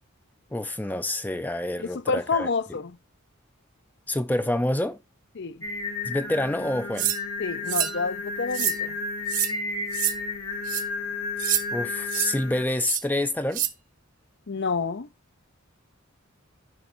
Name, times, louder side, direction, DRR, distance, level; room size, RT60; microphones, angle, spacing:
voice 1, 0.5-2.8 4.1-5.0 6.0-7.1 11.7-13.7, left 1 dB, 10° left, 0.4 m, -27 dB
voice 2, 1.8-2.9 5.4-5.6 7.4-9.0 14.5-15.1, left 4 dB, 55° left, 0.6 m, -28 dB
Singing, 5.6-12.6, left 4 dB, 75° left, 2.3 m, -32 dB
sound 1, 7.0-7.2 7.7-8.0 8.5-8.8 9.3-9.5 9.9-10.1 10.7-10.8 11.4-11.6 12.1-12.3 12.8-13.0 13.5-13.7, right 11 dB, 40° right, 0.8 m, -26 dB
15.5 x 5.2 x 2.6 m
head